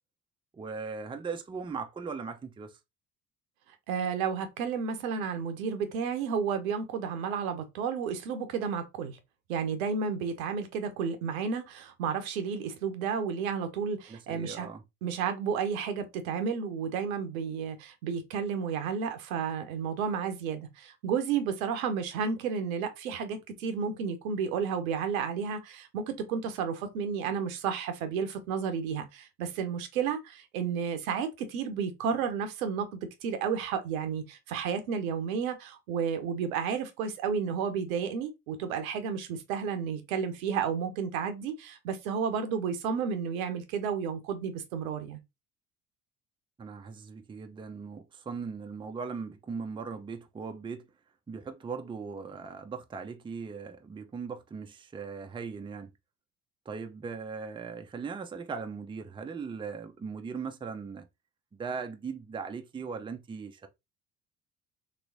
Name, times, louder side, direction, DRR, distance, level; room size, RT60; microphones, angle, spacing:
voice 1, 0.5-2.7 14.1-14.8 46.6-50.9 51.3-55.9 56.7-61.1 61.5-63.7, right 5 dB, 10° right, 0.5 m, -39 dB
voice 2, 3.9-9.2 9.5-14.7 15.0-26.0 26.3-45.2, right 6 dB, 75° right, 0.7 m, -32 dB
3.3 x 3.0 x 2.6 m
hypercardioid pair, 55°, 42 cm